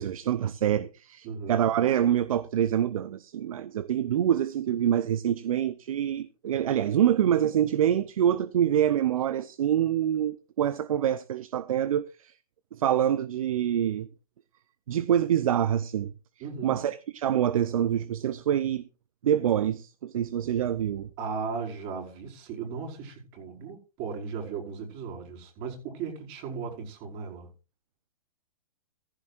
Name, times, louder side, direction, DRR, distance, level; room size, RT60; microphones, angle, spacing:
voice 1, 0.0-12.3 12.7-14.1 14.9-16.1 16.6-18.8 19.2-21.1, right 10 dB, 65° right, 0.7 m, -26 dB
voice 2, 1.2-1.6 16.4-16.8 21.2-27.5, right 5 dB, 40° right, 5.2 m, -36 dB
15.0 x 14.0 x 2.5 m
hypercardioid pair, 115°, 19 cm